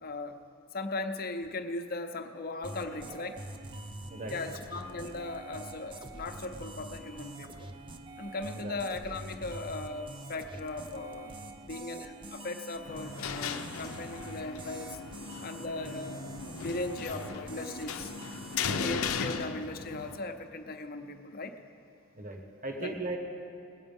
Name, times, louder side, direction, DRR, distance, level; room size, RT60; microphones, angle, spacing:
voice 1, 0.0-0.4 0.7-3.4 4.3-7.8 8.2-11.3 11.6-15.0 15.4-18.1 18.8-21.6 22.8-22.9, left 2 dB, 45° left, 7 dB, 0.8 m, -38 dB
sound 1, 2.6-18.7, right 2 dB, 25° right, 0.6 m, -45 dB
voice 2, 4.1-4.6 8.6-8.8 18.7-19.0 22.2-23.2, right 2 dB, 40° right, 3 dB, 1.2 m, -38 dB
sound 2, 12.8-20.2, left 5 dB, 90° left, 0.7 m, -37 dB
20.0 x 8.1 x 5.4 m, 2.6 s
head